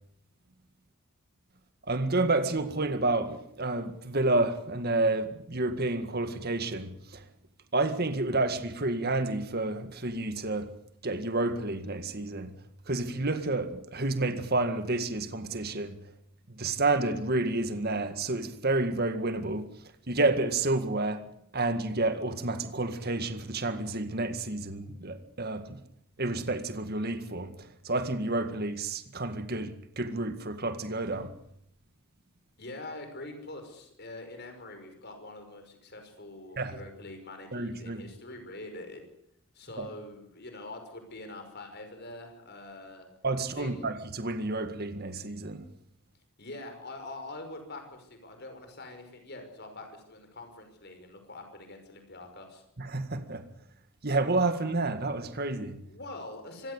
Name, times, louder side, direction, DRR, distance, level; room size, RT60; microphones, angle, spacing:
voice 1, 1.9-7.3 7.7-10.7 11.0-16.0 16.5-19.7 20.1-21.2 21.5-25.8 26.2-31.4 36.6-36.8 37.5-38.0 39.8-39.9 43.2-45.7 52.8-53.5 54.0-55.8, right 2 dB, 45° right, 1.9 m, -30 dB
voice 2, 32.6-39.0 39.5-43.1 43.6-43.9 46.4-52.6 55.9-56.7, left 2 dB, 50° left, 5.6 m, -44 dB
26.0 x 16.0 x 8.3 m
head